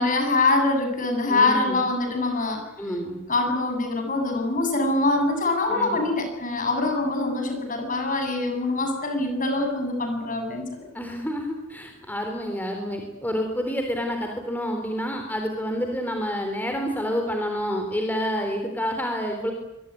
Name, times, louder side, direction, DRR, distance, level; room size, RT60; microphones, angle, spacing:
voice 1, 0.0-2.9 3.3-10.9, left 2 dB, 40° left, 5 dB, 7.6 m, -24 dB
voice 2, 1.3-1.8 2.8-3.2 5.7-6.0 10.9-19.5, equal, 10° left, 3 dB, 3.6 m, -28 dB
25.5 x 23.0 x 9.8 m, 0.87 s
head